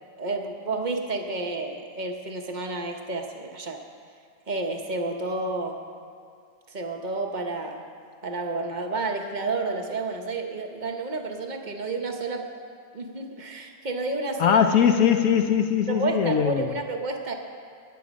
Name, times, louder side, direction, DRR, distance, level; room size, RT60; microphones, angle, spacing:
voice 1, 0.2-3.8 4.5-5.8 6.7-7.8 8.2-12.5 12.9-14.6 15.9-17.3, right 3 dB, 40° right, 3 dB, 0.7 m, -30 dB
voice 2, 14.4-16.7, left 8 dB, 65° left, 7 dB, 0.9 m, -21 dB
19.0 x 8.6 x 5.2 m, 2.2 s
omnidirectional pair, 2.0 m